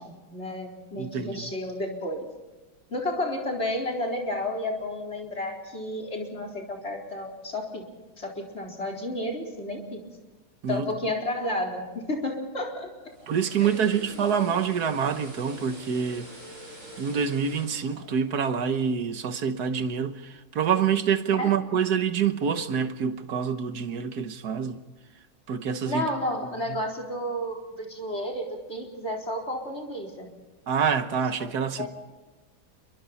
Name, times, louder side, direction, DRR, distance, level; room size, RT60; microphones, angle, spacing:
voice 1, 0.0-2.3 2.9-7.8 8.2-10.0 10.7-12.9 13.6-13.7 14.2-14.5 21.4-21.5 25.8-30.3 31.4-31.5 31.8-31.9, left 1 dB, 30° left, 4.4 m, -32 dB
voice 2, 1.0-1.5 10.6-11.1 13.3-16.3 17.0-24.8 25.5-26.1 26.7-26.8 30.7-31.9, right 7 dB, 55° right, 1.5 m, -26 dB
sound 1, 12.9-19.1 19.4-19.6, right 1 dB, 40° right, 7.0 m, -46 dB
29.0 x 23.5 x 4.2 m
omnidirectional pair, 2.3 m